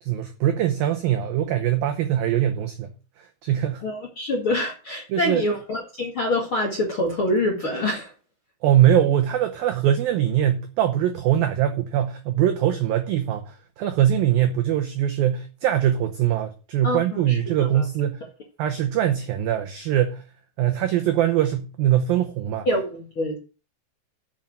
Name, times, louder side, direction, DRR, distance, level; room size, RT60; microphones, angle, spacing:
voice 1, 0.0-2.9 3.4-3.8 5.1-5.4 8.6-18.2 18.6-20.2 20.6-22.7, right 11 dB, 90° right, 2.0 m, -22 dB
voice 2, 3.8-8.1 16.8-17.8 22.7-23.4, left 1 dB, 50° left, 1.6 m, -26 dB
7.3 x 7.3 x 7.5 m
omnidirectional pair, 5.3 m